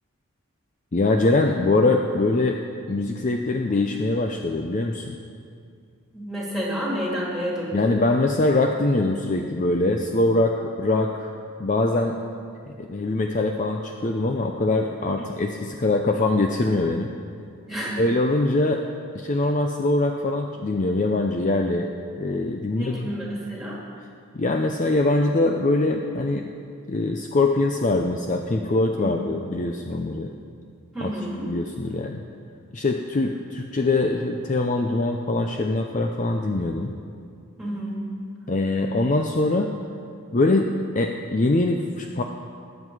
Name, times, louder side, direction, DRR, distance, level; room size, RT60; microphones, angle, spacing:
voice 1, 0.9-2.6 2.9-5.2 7.7-11.3 11.6-12.2 12.7-17.1 18.0-18.8 19.1-21.9 22.2-23.1 24.3-26.5 26.9-30.3 31.0-31.1 31.5-32.2 32.7-36.9 38.5-39.7 40.3-42.2, left 2 dB, 35° left, 3 dB, 0.5 m, -23 dB
voice 2, 6.1-7.9 15.2-15.3 17.7-18.0 22.8-23.8 29.0-29.3 30.9-31.5 37.6-38.0, equal, ahead, -5 dB, 2.7 m, -30 dB
20.0 x 7.5 x 4.8 m, 2.3 s
head